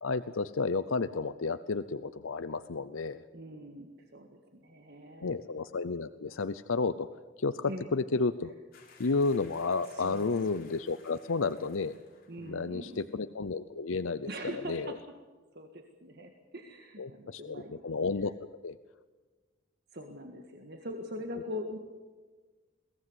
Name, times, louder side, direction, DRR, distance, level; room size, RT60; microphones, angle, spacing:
voice 1, 0.0-3.2 5.2-7.1 7.4-8.5 9.0-11.9 12.4-14.3 14.7-14.9 17.0-18.3 18.6-18.8, left 4 dB, 85° left, 12 dB, 0.7 m, -31 dB
voice 2, 3.3-5.4 7.6-7.9 9.9-10.4 12.3-13.1 14.3-15.0 15.5-17.8 19.9-21.8, equal, 55° right, 4 dB, 1.8 m, -42 dB
sound 1, 8.7-12.6 12.9-13.1, left 5 dB, 45° left, 4.3 m, -59 dB
22.5 x 18.0 x 8.1 m, 1.4 s
head